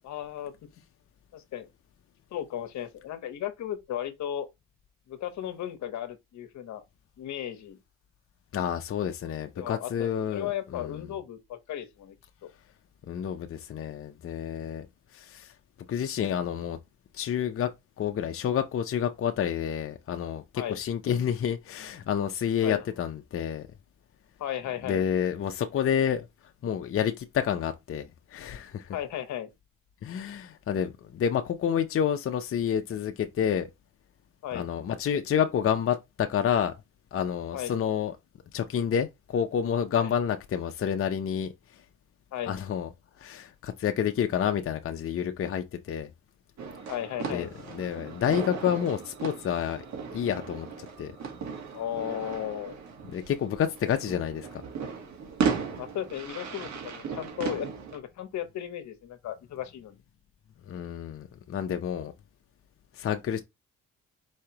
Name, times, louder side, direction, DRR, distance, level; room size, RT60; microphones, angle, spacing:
voice 1, 0.0-0.5 1.3-1.7 2.3-4.5 5.1-6.8 7.2-7.8 9.6-12.1 12.4-12.5 20.6-20.8 22.6-22.8 24.4-25.0 28.9-29.5 34.4-34.7 37.5-37.7 40.0-40.1 42.3-42.5 46.9-47.5 51.7-52.7 55.8-60.0, left 11 dB, 70° left, 1.0 m, -35 dB
voice 2, 8.5-11.0 13.1-14.9 15.1-15.5 15.9-16.8 17.1-17.7 18.0-23.7 24.8-26.3 26.6-29.0 30.0-33.7 34.5-36.7 37.1-38.2 38.5-41.8 42.5-42.9 43.2-46.1 47.3-49.8 50.1-51.1 53.1-54.6 60.7-62.1 62.9-63.4, left 8 dB, 45° left, 0.7 m, -29 dB
sound 1, 46.6-58.0, right 6 dB, 65° right, 1.6 m, -36 dB
4.8 x 3.2 x 2.9 m
cardioid pair, 80°, 30 cm